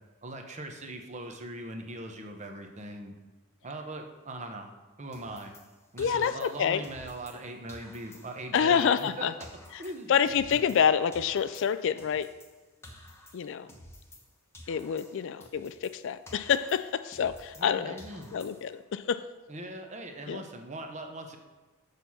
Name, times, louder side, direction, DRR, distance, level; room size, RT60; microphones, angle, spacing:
voice 1, 0.2-3.1 3.6-4.7 5.0-5.5 5.9-9.3 9.8-10.1 10.5-10.6 17.6-18.4 19.5-21.4, right 1 dB, 30° right, 4 dB, 0.9 m, -40 dB
sound 1, 5.1-7.4 7.7-10.9 11.1-14.3 14.5-17.7 18.0-18.8, left 1 dB, 10° left, 1.0 m, -52 dB
voice 2, 6.0-6.8 8.5-9.3 9.7-9.8 10.1-12.3 13.3-13.7 14.7-18.0 18.3-19.2 20.3-20.4, left 7 dB, 60° left, 12 dB, 0.4 m, -27 dB
6.7 x 6.2 x 5.5 m, 1.3 s
head